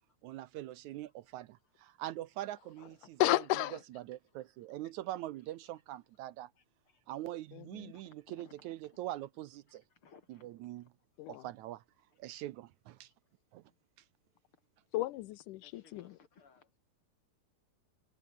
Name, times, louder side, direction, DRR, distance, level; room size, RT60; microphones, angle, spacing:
voice 1, 0.2-3.3 3.7-6.5 7.1-9.8 10.3-10.9 11.3-11.8 12.2-13.1 13.5-13.6, right 14 dB, 75° right, 2.0 m, -43 dB
voice 2, 3.2-3.8 7.5-7.9 11.2-11.4 14.9-16.2, left 17 dB, 80° left, 2.2 m, -33 dB
voice 3, 7.9-9.0 10.0-10.5 15.6-16.8, left 5 dB, 45° left, 3.5 m, -61 dB
omnidirectional pair, 3.6 m